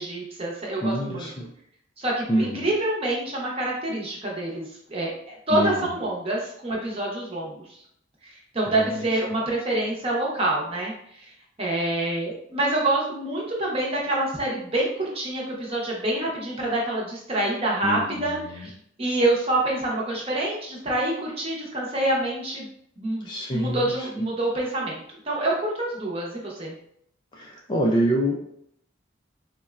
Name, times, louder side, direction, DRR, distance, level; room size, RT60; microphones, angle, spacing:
voice 1, 0.0-1.2 2.0-7.8 8.2-11.2 11.6-18.7 19.0-22.7 23.0-26.7, right 1 dB, 30° right, -3 dB, 0.7 m, -27 dB
voice 2, 0.8-1.5 2.3-2.7 5.5-6.0 8.7-9.2 17.8-18.7 23.2-24.3 27.3-28.4, equal, 25° left, -1 dB, 0.3 m, -27 dB
4.0 x 2.1 x 2.3 m, 0.70 s
head